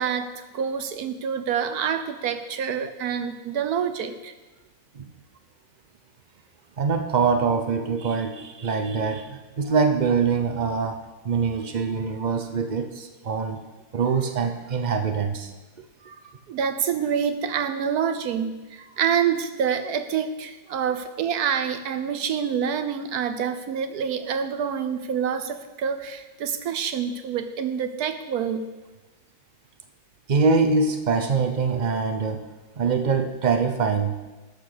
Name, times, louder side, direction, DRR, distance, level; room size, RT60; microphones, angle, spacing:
voice 1, 0.0-4.3 9.7-9.8 16.5-28.7, right 7 dB, 65° right, 9 dB, 1.1 m, -27 dB
voice 2, 6.8-11.0 11.2-13.6 13.9-15.5 16.0-16.1 20.9-21.0 30.3-32.4 32.8-34.2, right 5 dB, 85° right, 6 dB, 0.4 m, -24 dB
11.5 x 6.2 x 6.6 m, 1.2 s
omnidirectional pair, 1.9 m